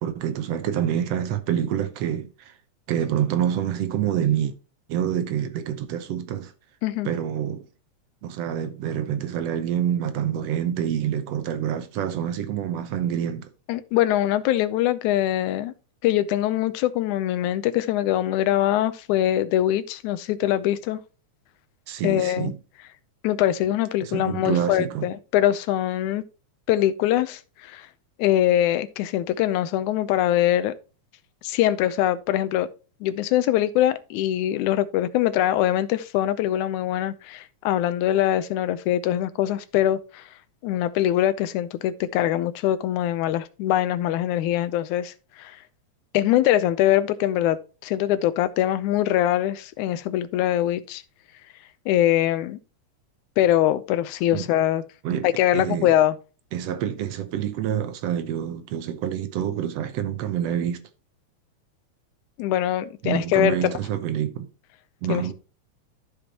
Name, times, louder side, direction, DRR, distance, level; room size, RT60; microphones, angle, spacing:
voice 1, 0.0-2.5 2.9-4.5 4.9-6.5 7.1-7.7 8.2-13.5 21.9-22.6 24.0-25.1 54.3-54.5 55.0-55.9 56.5-60.8 63.0-64.5 65.0-65.3, right 9 dB, 65° right, 1.8 m, -27 dB
voice 2, 13.7-15.7 16.0-21.0 22.0-22.5 23.2-26.2 26.7-27.9 28.2-30.7 31.4-32.7 33.0-40.2 40.6-45.1 45.4-45.6 46.1-51.0 51.9-52.6 53.4-54.8 55.2-56.2 62.4-63.7 65.1-65.3, left 12 dB, 85° left, 2.1 m, -23 dB
13.5 x 5.2 x 2.9 m
omnidirectional pair, 3.4 m